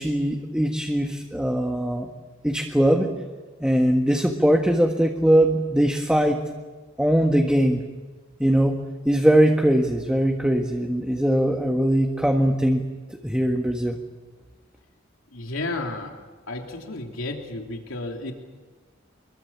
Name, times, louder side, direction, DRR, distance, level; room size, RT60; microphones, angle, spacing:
voice 1, 0.0-2.1 2.4-3.1 3.6-6.4 7.0-7.8 8.4-8.8 9.0-12.8 13.2-14.0, right 1 dB, 5° right, 2 dB, 1.6 m, -21 dB
voice 2, 15.3-16.2 16.5-18.3, left 2 dB, 80° left, 2 dB, 3.1 m, -32 dB
25.5 x 22.5 x 7.3 m, 1.3 s
head